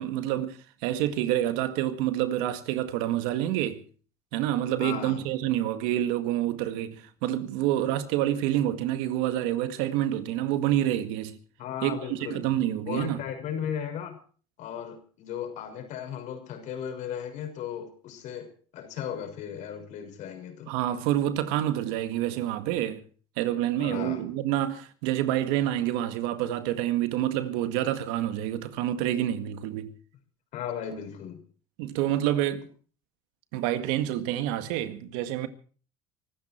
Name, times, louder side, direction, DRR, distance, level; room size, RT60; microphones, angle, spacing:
voice 1, 0.0-3.8 4.3-11.4 11.8-13.2 20.7-23.0 23.4-29.9 31.8-32.7 33.5-35.5, right 12 dB, 80° right, 1.9 m, -28 dB
voice 2, 4.8-5.2 11.6-12.5 12.9-14.2 14.6-18.5 18.7-20.7 23.8-24.2 30.5-31.4, left 8 dB, 60° left, 6.1 m, -36 dB
24.0 x 13.5 x 4.5 m
supercardioid pair, 110°, 14 cm